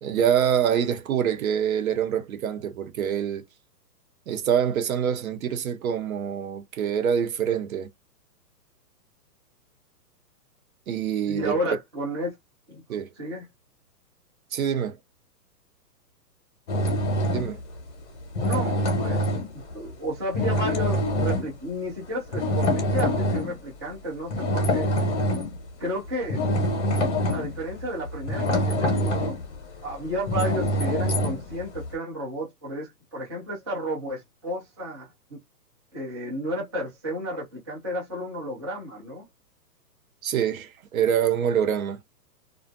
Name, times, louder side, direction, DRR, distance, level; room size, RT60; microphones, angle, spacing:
voice 1, 0.0-3.4 4.3-7.9 10.9-11.6 12.9-13.1 14.5-15.0 17.3-17.6 40.2-42.0, right 8 dB, 60° right, 0.8 m, -25 dB
voice 2, 11.3-12.3 12.7-13.5 18.3-19.2 19.5-24.9 25.8-26.4 27.3-29.4 29.8-35.4 35.9-39.3, equal, 20° right, 0.4 m, -32 dB
sound 1, 16.7-17.7 18.3-19.9 20.3-21.5 22.3-23.6 24.3-25.6 26.1-31.9, equal, 45° left, 1.0 m, -25 dB
2.4 x 2.2 x 2.5 m
hypercardioid pair, 155°, 49 cm